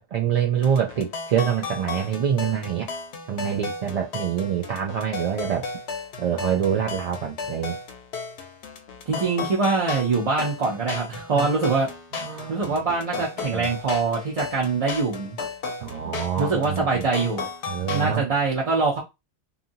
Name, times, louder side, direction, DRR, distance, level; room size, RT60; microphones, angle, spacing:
voice 1, 0.0-2.9 3.3-5.7 6.2-7.8 11.3-11.5 12.2-12.8 13.2-13.3 13.5-13.7 15.8-17.1 17.7-18.3, right 8 dB, 65° right, 0.4 m, -26 dB
sound 1, 0.6-18.1, left 4 dB, 75° left, 0.9 m, -34 dB
voice 2, 9.1-11.9 12.5-15.4 16.0-17.5 17.9-19.0, right 4 dB, 35° right, 0.7 m, -24 dB
2.7 x 2.7 x 2.6 m
omnidirectional pair, 1.1 m